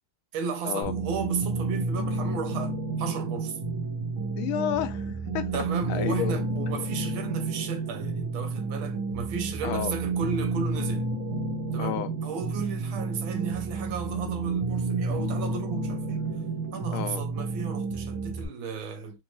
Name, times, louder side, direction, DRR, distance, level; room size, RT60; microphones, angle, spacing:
voice 1, 0.3-3.6 5.5-11.1 11.7-16.3 16.7-19.2, right 6 dB, 75° right, 1.5 m, -34 dB
sound 1, 0.8-18.4, right 3 dB, 45° right, 1.2 m, -30 dB
voice 2, 4.4-5.6 5.9-6.4 9.6-10.0 11.8-12.1 16.9-17.2, left 11 dB, 85° left, 1.4 m, -31 dB
4.0 x 2.6 x 3.0 m
omnidirectional pair, 2.2 m